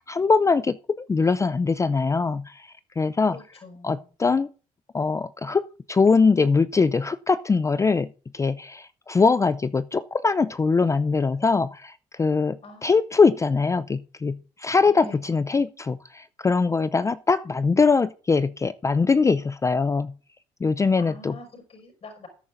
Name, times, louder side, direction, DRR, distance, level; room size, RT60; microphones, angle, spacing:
voice 1, 0.0-2.7 3.0-3.4 3.8-4.5 4.9-8.1 8.3-20.1 20.6-21.4, left 4 dB, 20° left, 0.4 m, -22 dB
voice 2, 3.3-4.0 12.6-13.0 14.8-15.2 21.0-22.3, left 3 dB, 45° left, 5.7 m, -44 dB
16.5 x 9.6 x 2.6 m
supercardioid pair, 75°, 14 cm